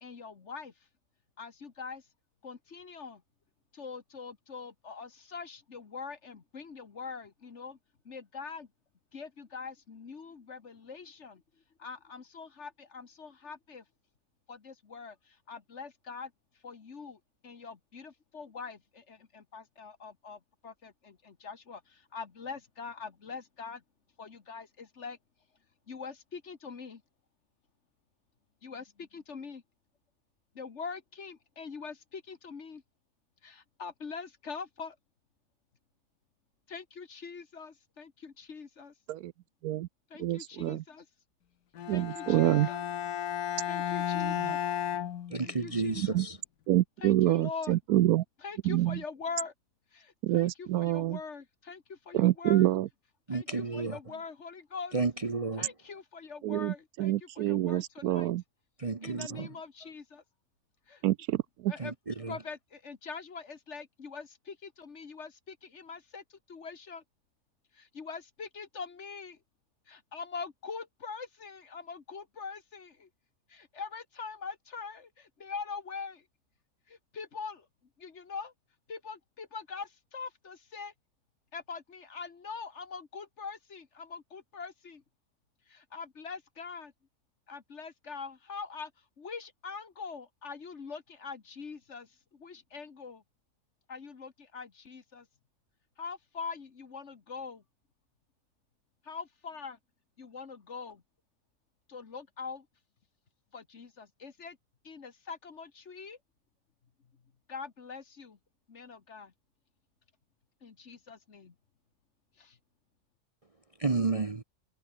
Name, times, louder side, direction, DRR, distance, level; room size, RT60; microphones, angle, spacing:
voice 1, 0.0-0.7 1.4-2.0 2.4-3.2 3.7-7.8 8.1-8.7 9.1-11.4 11.8-13.8 14.5-16.3 16.6-23.8 24.2-25.2 25.9-27.0 28.6-29.6 30.6-32.8 33.4-35.0 36.7-38.9 40.1-41.1 41.9-42.8 43.7-44.6 45.4-46.2 47.0-47.8 48.4-49.5 49.9-52.7 53.3-55.0 55.6-58.3 59.0-60.2 60.9-61.0 61.7-62.0 62.3-67.0 67.7-69.4 69.9-73.1 73.5-76.3 76.9-77.7 78.0-78.5 78.9-80.9 81.5-85.0 85.7-86.9 87.5-88.9 89.2-93.2 93.9-95.3 96.0-97.6 99.0-99.8 100.2-101.0 101.9-102.7 103.5-104.6 104.8-106.2 107.5-108.4 108.7-109.3 110.6-111.6 112.4-112.6, left 5 dB, 45° left, 1.7 m, -43 dB
voice 2, 40.2-40.8 41.9-42.7 44.4-44.5 46.1-46.2 46.7-48.2 48.7-49.0 50.2-51.2 52.1-52.9 56.4-58.4 61.0-61.7, right 14 dB, 75° right, 1.0 m, -27 dB
Bowed string instrument, 41.7-45.9, left 10 dB, 70° left, 1.5 m, -34 dB
voice 3, 45.3-46.4 53.3-54.0 54.9-55.7 58.8-59.6 61.8-62.4 113.8-114.4, right 4 dB, 30° right, 0.8 m, -32 dB
omnidirectional pair, 1.7 m